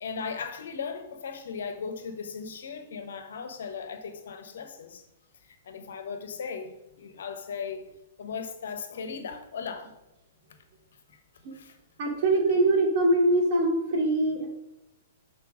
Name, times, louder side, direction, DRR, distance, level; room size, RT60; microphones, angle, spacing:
voice 1, 0.0-5.0 5.6-7.8 8.2-9.9 11.1-11.2 11.5-11.7, left 6 dB, 65° left, 1.0 m, -37 dB
voice 2, 12.0-14.5, right 2 dB, 50° right, 2.6 m, -23 dB
7.0 x 4.5 x 6.2 m
hypercardioid pair, 115°, 0 cm